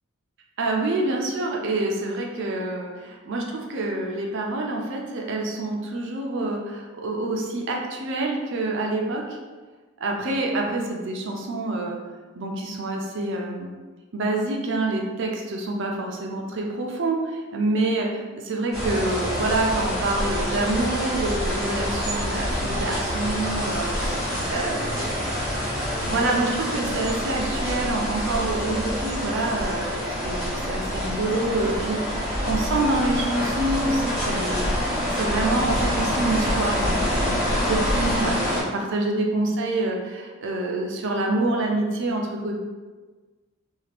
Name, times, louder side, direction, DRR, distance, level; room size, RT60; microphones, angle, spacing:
voice 1, 0.6-9.4 10.0-12.0 12.4-13.7 14.1-25.1 26.0-42.6, right 2 dB, 65° right, 0 dB, 0.5 m, -27 dB
sound 1, 18.7-38.6, equal, ahead, 1.0 m, -26 dB
2.7 x 2.4 x 3.3 m, 1.3 s
head